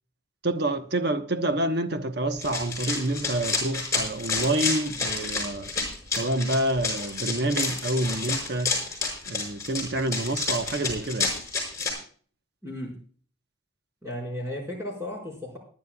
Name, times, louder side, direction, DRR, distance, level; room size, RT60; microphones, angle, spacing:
voice 1, 0.4-5.7 6.1-8.7 9.3-11.3, right 1 dB, 55° right, 1.1 m, -27 dB
Run, 2.4-11.9, left 4 dB, 15° left, 5.7 m, -29 dB
voice 2, 12.6-13.0 14.0-15.6, left 1 dB, 15° right, 5.0 m, -34 dB
25.0 x 10.5 x 2.3 m
head